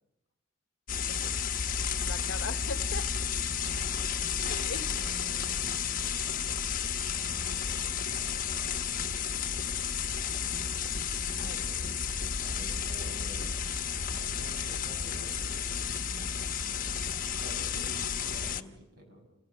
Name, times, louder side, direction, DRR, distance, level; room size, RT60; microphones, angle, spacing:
sound 1, 0.9-18.6, left 7 dB, 45° left, 1.1 m, -32 dB
voice 1, 2.0-3.1 4.5-4.9 11.4-11.6 16.6-17.2, left 4 dB, 75° left, 11 dB, 0.9 m, -40 dB
voice 2, 3.5-3.9 5.0-6.6 7.1-9.3 11.3-13.4 14.1-16.5 17.4-19.3, equal, 55° right, 4 dB, 7.1 m, -50 dB
29.0 x 28.0 x 5.6 m, 0.94 s
head